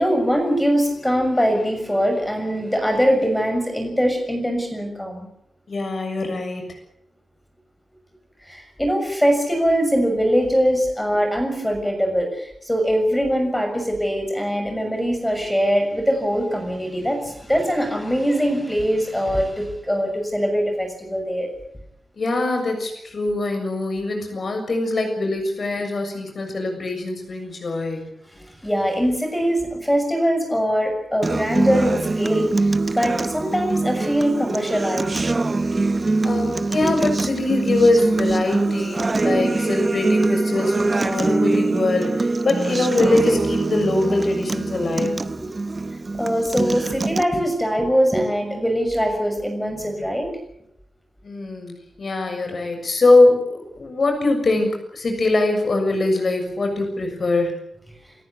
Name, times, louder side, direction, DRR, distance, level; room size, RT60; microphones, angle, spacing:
voice 1, 0.0-5.3 8.5-21.5 28.6-35.2 36.8-36.9 46.2-50.3, equal, 5° left, 4 dB, 6.7 m, -22 dB
voice 2, 5.7-6.8 22.2-28.1 36.2-45.3 51.2-57.6, left 2 dB, 45° left, 4 dB, 7.0 m, -22 dB
Acoustic guitar, 31.2-47.2, right 3 dB, 25° right, 0.8 m, -23 dB
29.0 x 14.5 x 8.3 m, 0.77 s
wide cardioid pair, 160°, 0 cm